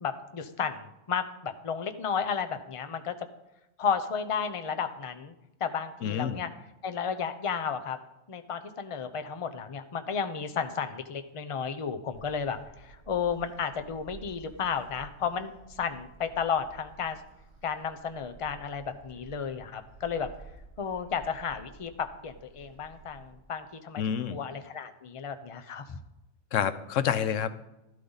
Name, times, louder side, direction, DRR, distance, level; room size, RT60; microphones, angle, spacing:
voice 1, 0.0-3.1 3.8-5.3 5.6-6.5 6.8-8.0 8.3-17.2 17.6-20.3 20.8-24.0 24.3-26.0, left 6 dB, 30° left, 9 dB, 0.7 m, -33 dB
voice 2, 6.0-6.4 24.0-24.4 26.5-27.5, left 8 dB, 90° left, 13 dB, 1.1 m, -28 dB
Gull seagull, 12.1-23.3, right 4 dB, 30° right, 3.5 m, -53 dB
13.0 x 12.0 x 4.0 m, 0.93 s
omnidirectional pair, 1.3 m